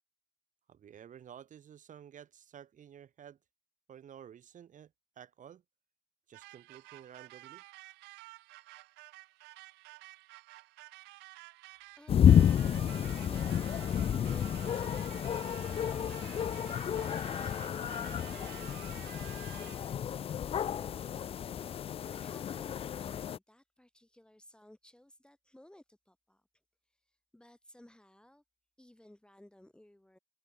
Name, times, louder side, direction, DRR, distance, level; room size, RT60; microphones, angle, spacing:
voice 1, 0.7-3.4 3.9-5.6 6.3-7.6 12.7-12.9, right 9 dB, 50° right, 3.4 m, -52 dB
sound 1, 6.3-20.0, right 22 dB, 90° right, 0.5 m, -51 dB
voice 2, 12.0-21.2 22.1-26.4 27.3-28.4 28.8-30.2, left 1 dB, 5° left, 2.0 m, -58 dB
sound 2, 12.1-23.4, left 9 dB, 35° left, 0.4 m, -30 dB
cardioid pair, 110°, 17 cm